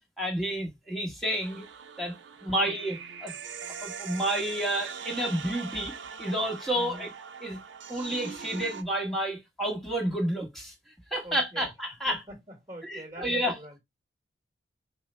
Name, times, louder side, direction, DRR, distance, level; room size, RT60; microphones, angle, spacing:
voice 1, 0.2-1.6 2.0-2.2 2.4-3.3 3.8-7.1 7.4-7.6 7.9-10.7 11.1-12.2 12.8-13.8, right 1 dB, ahead, 1.3 m, -30 dB
sound 1, 1.4-8.8, right 6 dB, 85° right, 0.6 m, -42 dB
voice 2, 6.7-7.1 11.2-11.7 12.0-13.8, right 1 dB, 20° right, 1.5 m, -44 dB
5.3 x 2.2 x 4.2 m
head